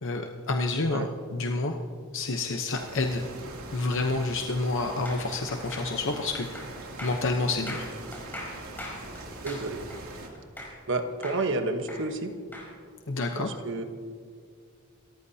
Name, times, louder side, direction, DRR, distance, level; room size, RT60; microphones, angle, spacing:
voice 1, 0.0-1.8 2.1-3.3 3.7-6.6 7.0-7.9 13.1-13.6, left 3 dB, 65° left, 4 dB, 0.9 m, -29 dB
sound 1, 2.8-10.3, right 2 dB, 85° right, 2.8 m, -42 dB
sound 2, 5.1-10.9 11.2-12.7, left 1 dB, 10° left, 4.9 m, -41 dB
voice 2, 9.4-9.8 10.9-12.3 13.3-13.8, right 2 dB, 60° right, 6 dB, 1.2 m, -30 dB
28.0 x 14.0 x 2.8 m, 2.1 s
head